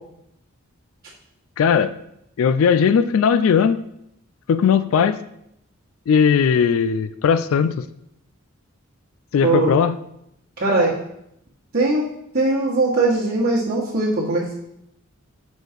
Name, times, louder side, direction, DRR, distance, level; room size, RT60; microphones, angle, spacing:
voice 1, 1.6-1.9 2.4-3.8 4.5-5.2 6.1-7.9 9.3-10.0, left 6 dB, 65° left, 14 dB, 0.3 m, -18 dB
voice 2, 10.6-10.9 11.7-12.0 12.3-14.5, right 2 dB, 45° right, -8 dB, 1.5 m, -20 dB
6.3 x 4.2 x 5.1 m, 0.77 s
head